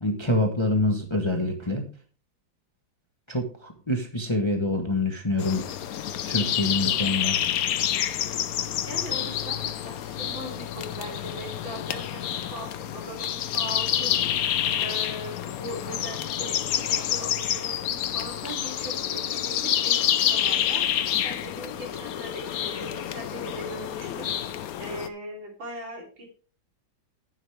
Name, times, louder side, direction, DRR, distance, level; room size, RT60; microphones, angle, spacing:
voice 1, 0.0-1.9 3.3-5.6 6.2-7.4, left 2 dB, 15° left, 3 dB, 1.1 m, -26 dB
sound 1, 5.4-25.1, left 10 dB, 65° left, 0.9 m, -28 dB
voice 2, 8.8-12.2 12.5-14.2 14.8-20.9 21.2-24.3 24.8-26.3, right 1 dB, 80° right, -1 dB, 4.1 m, -39 dB
10.5 x 9.0 x 3.4 m, 0.38 s
omnidirectional pair, 2.1 m